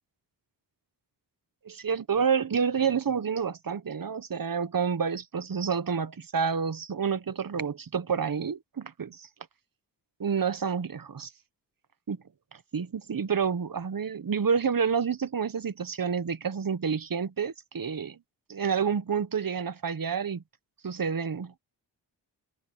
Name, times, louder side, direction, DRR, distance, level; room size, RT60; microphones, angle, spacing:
voice 1, 1.6-9.3 10.2-11.3 12.1-12.2 12.7-18.2 18.5-20.4 20.8-21.6, right 6 dB, 50° right, 1.5 m, -29 dB
cardioid pair, 50°, 44 cm